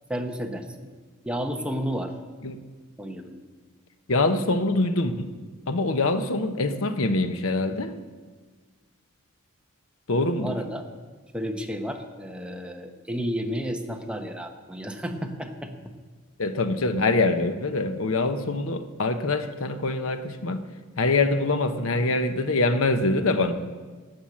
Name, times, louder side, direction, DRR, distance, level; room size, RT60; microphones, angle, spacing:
voice 1, 0.1-0.9 1.2-2.1 3.0-3.4 10.4-10.8 11.3-15.7, equal, 5° right, 3 dB, 0.9 m, -32 dB
voice 2, 4.1-5.3 5.7-7.9 10.1-10.6 16.4-20.6 21.0-23.5, left 2 dB, 70° left, 9 dB, 0.9 m, -24 dB
13.0 x 8.1 x 8.7 m, 1.4 s
head